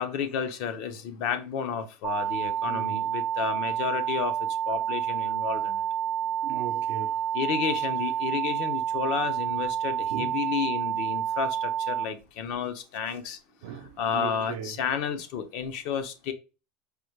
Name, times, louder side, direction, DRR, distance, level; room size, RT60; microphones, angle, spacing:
voice 1, 0.0-4.3 4.7-5.8 7.3-13.4 14.0-16.3, left 7 dB, 55° left, 0.7 m, -31 dB
sound 1, 2.0-12.0, right 9 dB, 30° right, 0.5 m, -29 dB
voice 2, 2.2-3.1 3.8-3.9 4.9-5.0 5.5-7.4 10.1-10.4 13.6-14.8, right 9 dB, 80° right, 0.6 m, -40 dB
4.8 x 2.4 x 3.2 m
supercardioid pair, 160°, 0 cm